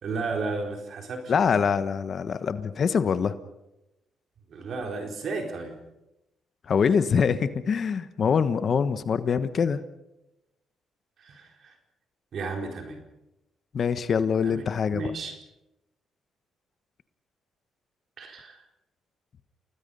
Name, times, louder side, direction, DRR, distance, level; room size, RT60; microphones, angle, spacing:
voice 1, 0.0-1.6 4.5-5.8 11.2-11.7 12.3-13.0 14.4-14.6 14.9-15.3 18.2-18.6, right 3 dB, 60° right, 3 dB, 4.3 m, -33 dB
voice 2, 1.3-3.3 6.7-9.8 13.7-15.0, left 6 dB, 50° left, 12 dB, 1.2 m, -24 dB
29.5 x 19.5 x 5.5 m, 0.93 s
cardioid pair, 90°, 0 cm